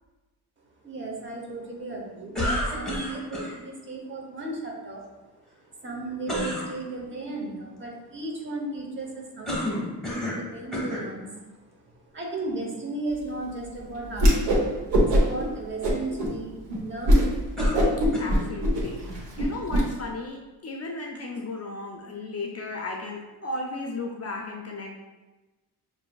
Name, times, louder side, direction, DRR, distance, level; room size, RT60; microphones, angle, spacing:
voice 1, 0.8-5.0 5.6-17.4, right 2 dB, 30° right, 0 dB, 0.9 m, -35 dB
sound 1, 2.3-3.5 6.3-6.7 9.5-10.4 10.7-11.1 11.9-12.0 17.6-18.5, left 1 dB, ahead, 1.2 m, -30 dB
Whoosh swoosh swish, 14.1-14.6 14.9-15.4 15.8-16.3 16.7-16.8 17.1-17.3 17.6-19.8, equal, 85° right, 1.0 m, -21 dB
voice 2, 18.2-25.0, left 2 dB, 40° left, 0 dB, 0.5 m, -35 dB
6.1 x 2.6 x 2.3 m, 1.1 s
cardioid pair, 115°, 40 cm